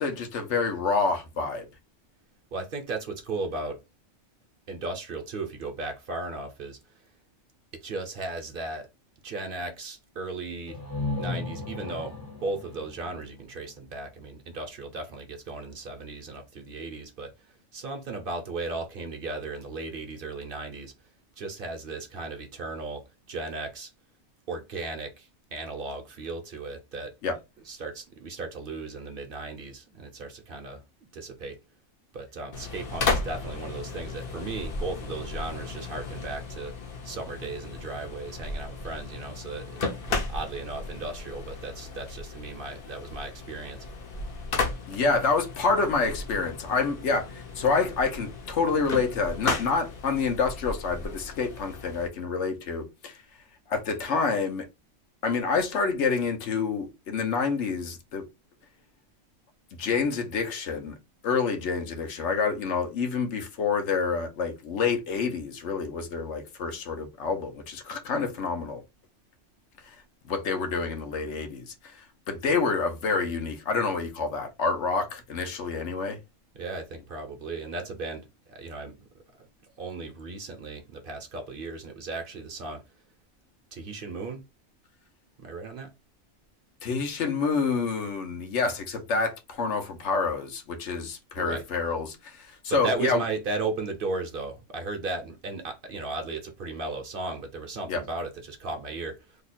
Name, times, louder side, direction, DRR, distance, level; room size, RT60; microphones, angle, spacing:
voice 1, 0.0-1.7 27.2-27.4 44.9-53.2 53.7-54.7 55.2-58.2 59.8-60.9 61.2-68.8 69.9-70.0 70.3-76.2 86.8-93.2 97.9-98.0, left 4 dB, 80° left, 1.1 m, -28 dB
voice 2, 2.5-3.8 4.7-6.8 7.7-8.9 9.2-10.8 11.2-17.3 17.7-20.9 21.4-23.9 24.5-27.1 27.6-30.8 31.1-31.6 32.1-36.7 37.0-39.7 40.0-43.9 76.5-79.1 79.8-82.8 83.7-84.4 85.4-85.9 91.3-91.6 92.7-99.4, right 3 dB, 55° right, 0.9 m, -36 dB
sound 1, 10.7-14.4, left 2 dB, 20° left, 0.7 m, -36 dB
sound 2, 32.5-52.1, left 3 dB, 55° left, 0.9 m, -35 dB
2.9 x 2.3 x 4.1 m
omnidirectional pair, 1.2 m